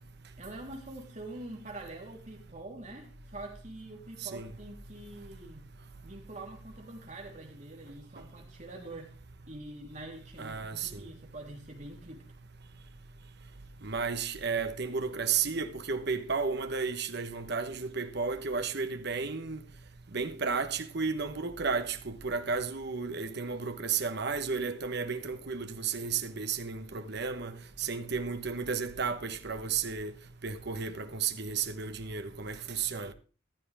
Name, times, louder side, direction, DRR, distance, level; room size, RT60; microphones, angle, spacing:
voice 1, 0.4-5.7 6.0-9.1 9.5-12.3, right 2 dB, 35° right, 3.5 m, -45 dB
voice 2, 10.4-10.9 13.8-19.6 20.1-27.5 27.8-30.1 30.4-33.1, right 5 dB, 55° right, 1.1 m, -33 dB
14.5 x 12.5 x 3.5 m
head